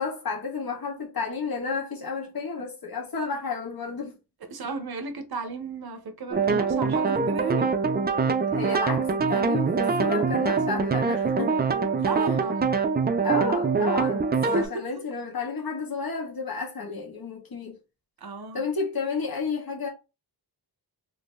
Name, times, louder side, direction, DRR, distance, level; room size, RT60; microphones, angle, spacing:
voice 1, 0.0-4.2 8.5-11.6 13.2-17.8 18.5-19.9, left 4 dB, 60° left, 1.1 m, -31 dB
voice 2, 4.5-7.6 12.0-12.7 14.4-14.7 18.2-18.6, right 3 dB, 65° right, 0.7 m, -33 dB
sound 1, 6.3-14.7, right 5 dB, 25° right, 0.3 m, -24 dB
2.8 x 2.6 x 3.6 m
wide cardioid pair, 150°, 41 cm